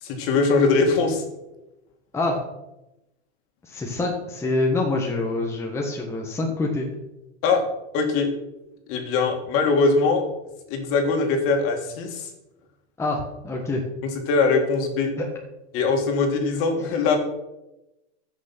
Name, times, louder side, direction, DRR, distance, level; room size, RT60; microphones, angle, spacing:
voice 1, 0.0-1.2 7.4-7.6 7.9-8.3 8.9-10.2 10.7-12.3 14.3-15.1 15.7-17.2, left 4 dB, 40° left, 4 dB, 2.5 m, -21 dB
voice 2, 3.6-6.9 13.0-13.8 15.2-15.3, left 2 dB, 10° left, 0 dB, 1.4 m, -26 dB
14.5 x 6.4 x 6.1 m, 0.96 s
supercardioid pair, 145°, 34 cm